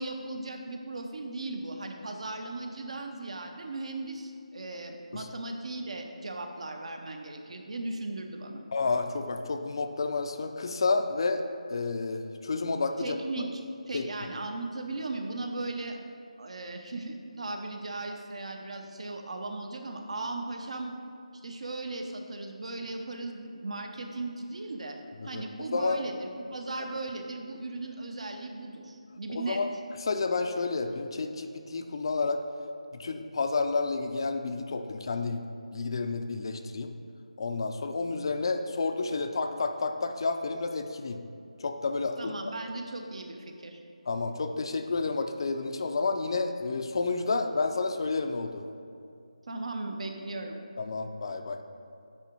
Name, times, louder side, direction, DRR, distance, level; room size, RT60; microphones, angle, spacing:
voice 1, 0.0-8.6 13.0-13.6 13.9-16.0 16.4-20.9 21.4-25.0 25.2-29.6 42.2-43.8 49.5-50.6, right 2 dB, 55° right, 4 dB, 0.8 m, -37 dB
voice 2, 8.7-11.4 11.7-13.2 13.9-14.1 25.2-25.4 25.7-26.0 29.3-29.7 30.0-32.4 33.0-35.4 35.7-36.9 37.4-41.2 41.6-42.3 44.1-48.7 50.8-51.6, left 3 dB, 40° left, 6 dB, 0.4 m, -30 dB
9.7 x 3.8 x 4.5 m, 2.4 s
figure-of-eight pair, 170°, 4 cm